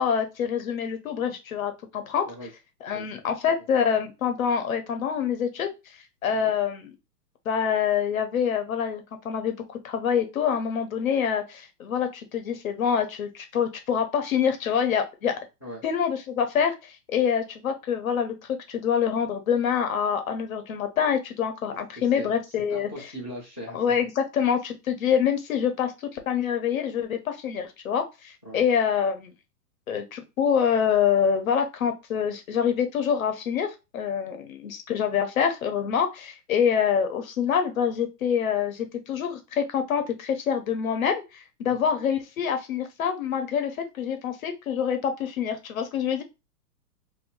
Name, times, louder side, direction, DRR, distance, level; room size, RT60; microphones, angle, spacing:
voice 1, 0.0-2.3 2.8-5.7 6.2-6.9 7.4-9.6 9.8-15.4 15.8-22.9 23.7-29.3 29.9-46.2, left 7 dB, 60° left, 7 dB, 0.9 m, -26 dB
voice 2, 21.7-23.9 28.4-28.6 41.7-41.8, equal, 15° left, -13 dB, 0.4 m, -41 dB
2.6 x 2.5 x 3.6 m, 0.25 s
hypercardioid pair, 170°, 48 cm